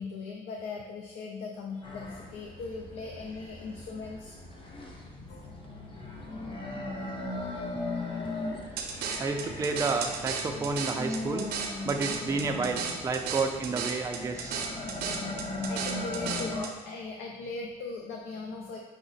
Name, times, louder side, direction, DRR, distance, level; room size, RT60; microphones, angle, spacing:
voice 1, 0.0-4.3 5.3-5.5 6.0-6.3 9.0-9.1 14.9-15.2 15.6-18.8, left 4 dB, 85° left, 1 dB, 0.5 m, -39 dB
sound 1, 1.8-16.6, left 2 dB, 30° left, 0.7 m, -38 dB
sound 2, 8.8-16.7, right 6 dB, 70° right, 0.6 m, -35 dB
voice 2, 9.2-11.5 11.8-14.6, right 4 dB, 20° right, 4 dB, 0.4 m, -30 dB
5.8 x 2.1 x 4.0 m, 1.3 s
cardioid pair, 110°, 17 cm